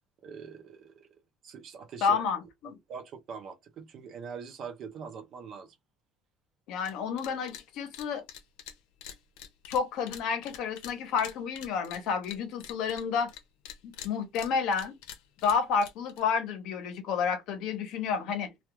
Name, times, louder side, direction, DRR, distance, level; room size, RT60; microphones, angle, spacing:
voice 1, 0.2-1.1 1.4-2.2 2.9-5.7, right 6 dB, 40° right, 0.5 m, -43 dB
voice 2, 2.0-2.8 6.7-8.2 9.7-13.3 13.8-14.9 15.4-18.5, left 6 dB, 55° left, 0.7 m, -30 dB
sound 1, 6.8-6.9 7.2-7.6 7.9-13.4 13.7-16.2, left 9 dB, 90° left, 0.7 m, -45 dB
2.3 x 2.2 x 2.9 m
cardioid pair, 175°, 0 cm